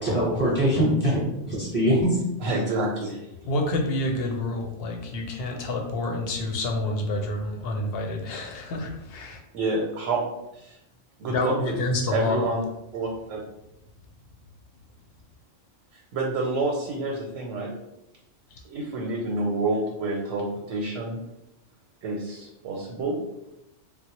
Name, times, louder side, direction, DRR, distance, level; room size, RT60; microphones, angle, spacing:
voice 1, 0.0-2.2, equal, 10° right, -6 dB, 1.0 m, -23 dB
voice 2, 2.4-3.3 9.5-10.2 10.5-10.8 11.2-11.7 12.1-12.6 12.9-13.4 15.9-17.7 18.7-21.2 22.0-23.2, right 2 dB, 90° right, 0 dB, 1.0 m, -28 dB
voice 3, 3.5-9.4 11.3-12.5 18.5-18.6, left 2 dB, 60° left, 2 dB, 0.7 m, -28 dB
3.7 x 2.0 x 2.9 m, 0.89 s
omnidirectional pair, 1.3 m